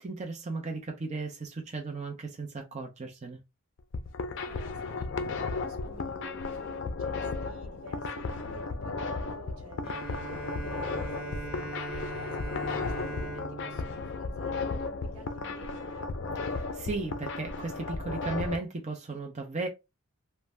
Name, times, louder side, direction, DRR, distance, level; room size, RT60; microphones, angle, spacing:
voice 1, 0.0-3.4 16.4-19.7, right 3 dB, 30° right, 0.5 m, -36 dB
sound 1, 3.8-18.6, left 4 dB, 55° left, 0.4 m, -35 dB
voice 2, 4.3-16.0, right 2 dB, 85° right, 1.0 m, -51 dB
Bowed string instrument, 9.8-15.3, right 3 dB, 5° right, 1.0 m, -41 dB
2.6 x 2.2 x 3.2 m
head